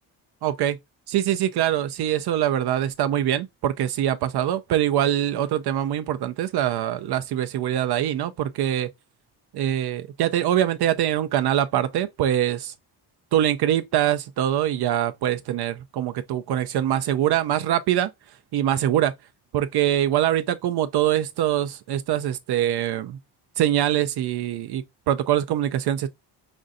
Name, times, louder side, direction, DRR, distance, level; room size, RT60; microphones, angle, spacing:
voice 1, 0.4-0.8 1.1-8.9 9.5-12.7 13.3-18.1 18.5-19.1 19.5-23.2 23.6-26.1, right 11 dB, 70° right, 0.5 m, -23 dB
5.2 x 2.5 x 2.5 m
cardioid pair, 125°, 41 cm